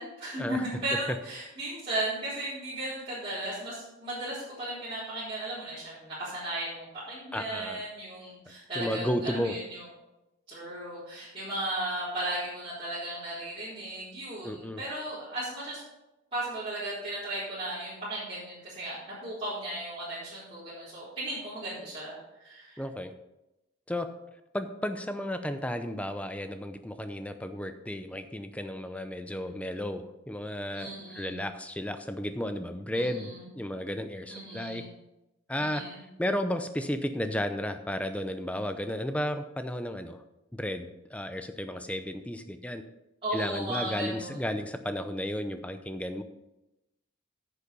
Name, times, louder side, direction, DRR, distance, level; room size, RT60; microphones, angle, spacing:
voice 1, 0.0-9.8 10.5-15.8 16.3-18.9 19.2-22.8 29.3-29.6 30.7-31.4 32.9-33.5 34.3-34.9 35.6-36.0 43.2-44.6, right 1 dB, 30° right, -13 dB, 4.1 m, -36 dB
voice 2, 7.3-7.8 8.8-9.6 14.4-14.8 22.8-23.1 23.9-24.1 24.5-34.8 35.5-35.8 36.2-40.2 40.5-42.8 43.3-46.2, left 1 dB, 5° left, 8 dB, 0.6 m, -33 dB
9.8 x 6.9 x 5.5 m, 0.95 s
head